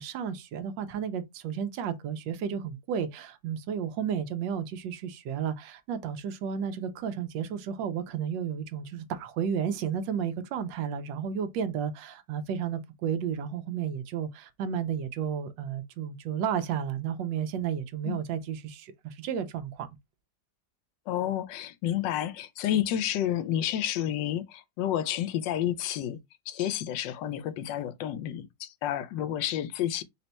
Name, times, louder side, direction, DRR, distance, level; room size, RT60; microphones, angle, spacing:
voice 1, 0.0-19.9, right 8 dB, 90° right, 1.3 m, -32 dB
voice 2, 21.1-26.2 26.5-30.0, left 11 dB, 80° left, 1.2 m, -30 dB
4.2 x 2.2 x 4.0 m
omnidirectional pair, 1.9 m